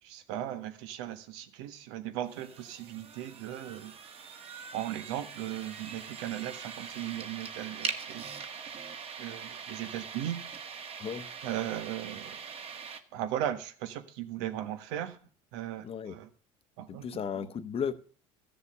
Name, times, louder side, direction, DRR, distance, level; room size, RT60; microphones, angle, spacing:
voice 1, 0.0-3.9 4.6-8.8 9.2-10.4 11.4-12.4 13.1-15.2 15.5-16.3 16.8-17.5, right 12 dB, 85° right, 1.4 m, -37 dB
sound 1, 2.3-13.0, right 6 dB, 40° right, 1.6 m, -42 dB
voice 2, 11.0-11.3 15.8-16.2 16.9-17.9, left 7 dB, 40° left, 1.1 m, -35 dB
13.5 x 7.0 x 6.7 m
supercardioid pair, 95°, 15 cm